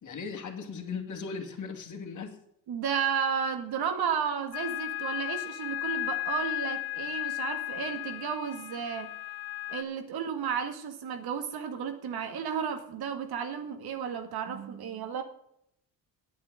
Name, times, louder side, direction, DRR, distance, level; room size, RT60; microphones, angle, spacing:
voice 1, 0.0-2.4, left 5 dB, 50° left, 3 dB, 2.5 m, -38 dB
voice 2, 2.7-9.1 9.7-15.2, right 7 dB, 70° right, 6 dB, 2.2 m, -33 dB
sound 1, 4.5-9.8, left 18 dB, 85° left, 0.8 m, -35 dB
9.3 x 9.0 x 7.5 m, 0.72 s
cardioid pair, 95°, 39 cm